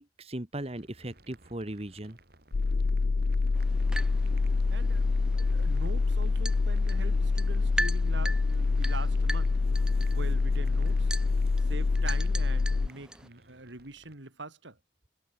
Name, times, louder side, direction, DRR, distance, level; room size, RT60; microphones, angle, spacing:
voice 1, 0.0-2.2, right 1 dB, 35° right, 1.7 m, -38 dB
sound 1, 0.7-14.1, right 2 dB, 55° right, 4.2 m, -59 dB
sound 2, 2.5-12.9, left 3 dB, 65° left, 0.5 m, -26 dB
sound 3, 3.5-13.3, right 1 dB, 5° right, 2.1 m, -41 dB
voice 2, 4.7-11.1 11.6-14.8, right 2 dB, 85° right, 3.4 m, -44 dB
head